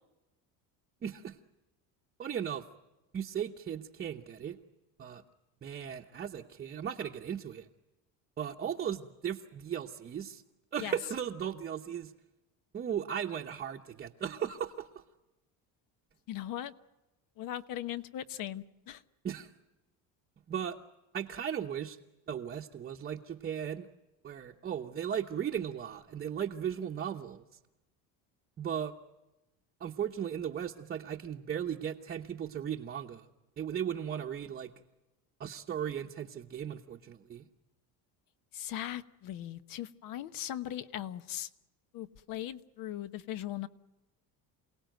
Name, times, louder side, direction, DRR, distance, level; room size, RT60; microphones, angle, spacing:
voice 1, 1.0-1.4 2.2-2.6 3.1-4.6 5.0-5.2 5.6-7.7 8.4-10.4 10.7-12.1 12.7-15.0 19.2-19.5 20.5-20.8 21.1-22.0 22.3-23.9 24.2-27.4 28.6-28.9 29.8-33.3 33.6-34.7 35.4-37.4, right 9 dB, 25° right, 0 dB, 1.0 m, -36 dB
voice 2, 16.3-16.7 17.4-19.0 38.5-41.5 41.9-43.7, left 12 dB, 60° left, 13 dB, 1.2 m, -39 dB
28.5 x 18.0 x 9.2 m, 1.0 s
cardioid pair, 155°, 38 cm